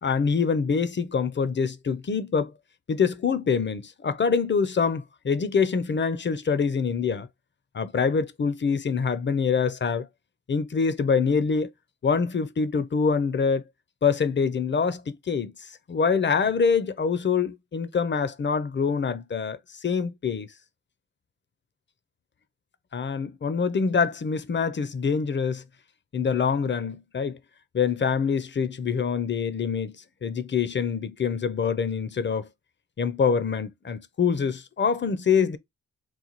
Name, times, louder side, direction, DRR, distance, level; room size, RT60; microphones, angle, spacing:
voice 1, 0.0-2.5 2.9-7.3 7.7-10.1 10.5-11.7 12.0-13.6 14.0-20.5 22.9-25.6 26.1-27.4 27.7-32.5 33.0-35.6, left 5 dB, 35° left, 0.6 m, -25 dB
4.1 x 2.3 x 2.9 m
cardioid pair, 55°, 31 cm